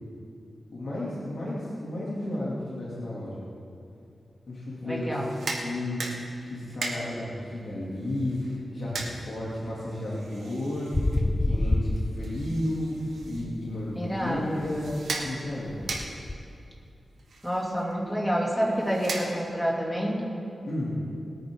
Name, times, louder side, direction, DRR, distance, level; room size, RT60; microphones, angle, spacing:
voice 1, 0.7-3.4 4.5-5.2 5.6-6.0 6.4-10.9 11.4-15.8 20.7-20.9, left 1 dB, 65° left, -7 dB, 2.8 m, -33 dB
voice 2, 4.8-5.4 13.9-14.6 17.4-20.2, equal, ahead, -3 dB, 2.8 m, -28 dB
sound 1, 5.1-19.8, right 3 dB, 85° right, 1.6 m, -40 dB
sound 2, 10.9-12.8 13.1-16.3, left 2 dB, 25° left, 0.6 m, -29 dB
21.0 x 9.4 x 3.8 m, 2.6 s
cardioid pair, 80°, 0 cm